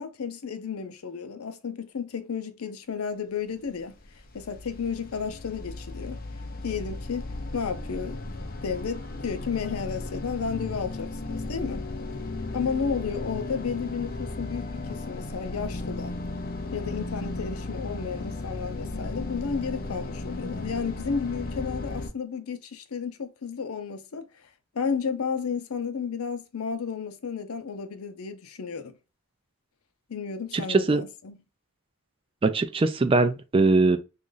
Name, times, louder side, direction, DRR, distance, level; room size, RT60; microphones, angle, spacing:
voice 1, 0.0-3.9 4.3-6.2 6.6-7.2 7.5-8.3 8.6-11.8 12.5-16.2 16.7-24.5 24.7-28.9 30.1-31.4, left 6 dB, 85° left, 0.6 m, -32 dB
sound 1, 3.6-22.1, left 2 dB, 40° left, 0.5 m, -35 dB
voice 2, 30.5-31.0 32.4-34.0, right 3 dB, 25° right, 0.3 m, -21 dB
3.0 x 2.5 x 3.8 m
head